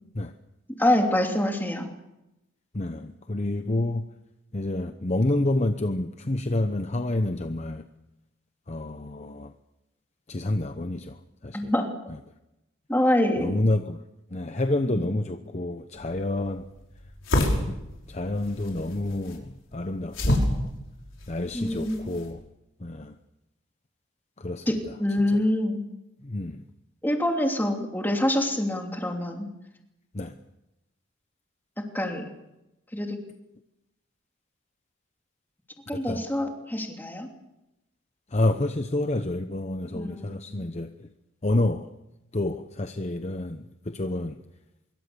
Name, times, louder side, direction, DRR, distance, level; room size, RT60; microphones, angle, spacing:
voice 1, 0.8-1.9 11.5-11.9 12.9-13.5 14.9-15.1 21.5-22.0 24.7-25.8 27.0-29.5 31.8-32.3 32.9-33.2 35.9-37.3 39.9-40.6, left 1 dB, 10° left, 2 dB, 2.9 m, -26 dB
voice 2, 2.7-4.1 4.5-7.9 8.7-9.5 10.3-11.7 12.1-12.2 13.4-14.0 14.3-16.7 17.7-17.8 18.1-20.7 21.3-22.4 22.8-23.2 24.4-25.0 25.3-25.4 26.2-26.7 30.1-30.4 35.9-36.2 38.3-41.1 41.4-41.9 42.3-44.4, left 1 dB, 35° left, 8 dB, 0.9 m, -29 dB
sound 1, 16.0-22.3, left 1 dB, 65° left, 5.9 m, -30 dB
25.5 x 23.0 x 7.0 m, 0.93 s
head